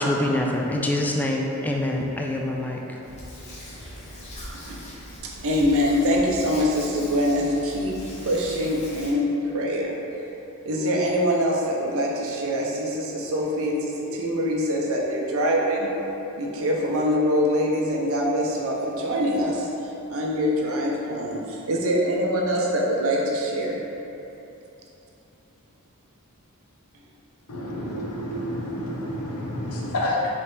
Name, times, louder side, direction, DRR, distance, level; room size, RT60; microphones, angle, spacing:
voice 1, 0.0-2.8, left 1 dB, 10° left, -1 dB, 0.3 m, -25 dB
Hands, 3.0-9.1, equal, 30° left, 0.8 m, -40 dB
voice 2, 5.2-8.0 8.3-10.0 10.6-15.9 16.4-19.7 20.1-23.8, equal, 65° right, -2 dB, 0.7 m, -24 dB
voice 3, 27.5-30.3, left 1 dB, 80° left, -3 dB, 0.7 m, -29 dB
4.1 x 3.2 x 3.4 m, 2.9 s
head